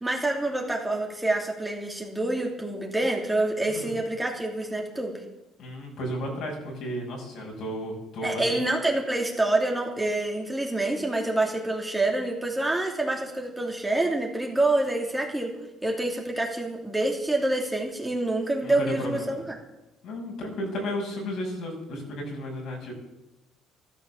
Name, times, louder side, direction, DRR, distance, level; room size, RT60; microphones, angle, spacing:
voice 1, 0.0-5.2 8.2-15.5 15.8-19.4, right 2 dB, 10° right, 0 dB, 2.9 m, -27 dB
voice 2, 5.6-8.6 18.6-19.5 20.0-22.9, equal, 65° left, 0 dB, 6.1 m, -33 dB
13.5 x 13.0 x 7.2 m, 0.97 s
cardioid pair, 110°, 0 cm